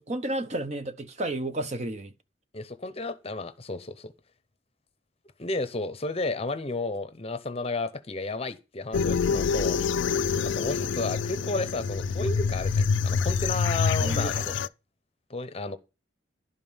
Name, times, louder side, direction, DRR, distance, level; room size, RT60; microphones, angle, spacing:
voice 1, 0.0-2.1 10.0-10.2 14.0-14.4, right 1 dB, 35° right, 0.9 m, -32 dB
voice 2, 2.5-4.1 5.4-9.8 10.4-14.6 15.3-15.8, left 2 dB, 30° left, 0.8 m, -32 dB
sound 1, 8.9-14.7, left 5 dB, 75° left, 0.4 m, -26 dB
11.5 x 5.3 x 5.6 m
head